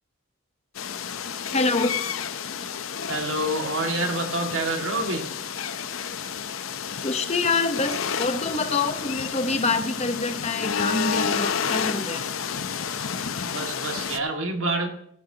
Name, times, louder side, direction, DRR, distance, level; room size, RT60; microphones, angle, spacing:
sound 1, 0.7-14.2, left 7 dB, 85° left, 0.8 m, -30 dB
voice 1, 1.5-1.9 7.0-12.2, left 3 dB, 30° left, 8 dB, 1.1 m, -26 dB
voice 2, 3.1-5.3 13.4-14.9, right 2 dB, 80° right, 3 dB, 2.1 m, -27 dB
17.5 x 10.5 x 2.9 m, 0.70 s
head